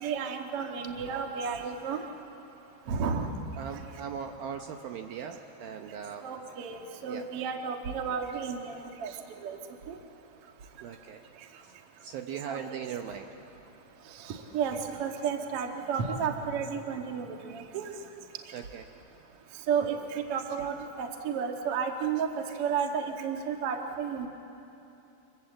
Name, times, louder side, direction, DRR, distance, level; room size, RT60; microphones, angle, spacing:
voice 1, 0.0-2.0 2.9-3.3 6.2-9.1 9.4-9.6 9.9-10.0 12.5-12.6 14.5-17.8 19.7-24.3, right 6 dB, 55° right, 3 dB, 1.7 m, -32 dB
voice 2, 3.6-6.2 7.1-7.3 10.8-11.2 11.6-11.8 12.0-13.3 18.5-18.9, right 7 dB, 70° right, 4 dB, 2.4 m, -39 dB
29.0 x 26.0 x 7.7 m, 2.9 s
omnidirectional pair, 4.9 m